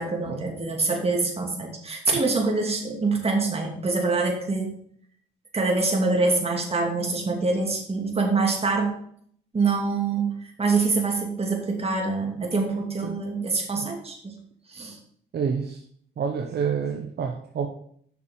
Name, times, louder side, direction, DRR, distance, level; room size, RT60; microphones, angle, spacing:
voice 1, 0.0-4.7 5.5-8.9 9.5-14.4 14.7-15.0, right 3 dB, 30° right, 1 dB, 2.6 m, -25 dB
voice 2, 15.3-15.8 16.2-17.7, right 6 dB, 55° right, 3 dB, 1.1 m, -28 dB
7.2 x 6.2 x 5.7 m, 0.63 s
cardioid pair, 90°, 20 cm